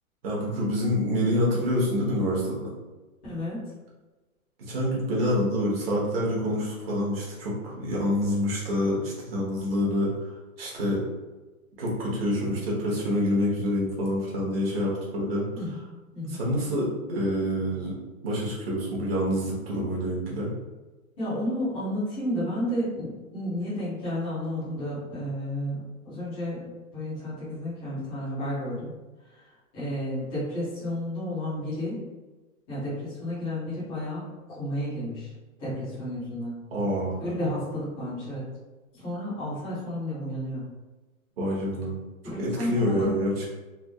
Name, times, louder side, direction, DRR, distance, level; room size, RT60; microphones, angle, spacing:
voice 1, 0.2-2.7 4.7-10.3 10.6-11.0 11.8-15.4 16.3-18.0 18.2-20.5 36.7-37.2 41.4-42.0 42.4-43.5, equal, 45° right, -5 dB, 1.1 m, -27 dB
voice 2, 3.2-3.6 15.5-15.8 16.1-16.4 21.2-25.8 26.0-26.6 26.9-28.9 29.2-32.0 32.7-35.3 35.6-36.5 37.2-38.4 38.9-40.7 42.2-43.1, left 1 dB, 10° left, -15 dB, 0.6 m, -32 dB
3.4 x 2.5 x 2.4 m, 1.2 s
hypercardioid pair, 170°, 43 cm